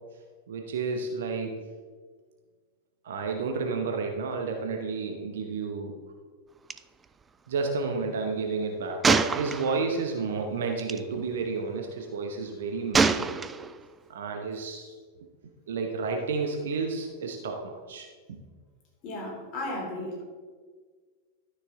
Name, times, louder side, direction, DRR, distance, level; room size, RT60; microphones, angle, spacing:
voice 1, 0.5-1.6 3.0-6.0 7.5-13.4 14.1-14.9 15.7-18.4, right 4 dB, 60° right, 3 dB, 0.9 m, -31 dB
Gunshot gunfire, 6.7-6.8 7.0-7.2 9.0-10.0 10.8-11.0 12.9-13.9, right 4 dB, 15° right, 0.3 m, -25 dB
voice 2, 19.0-20.2, left 1 dB, 35° left, -2 dB, 3.0 m, -34 dB
12.0 x 6.6 x 3.7 m, 1.5 s
figure-of-eight pair, 90°, 0 cm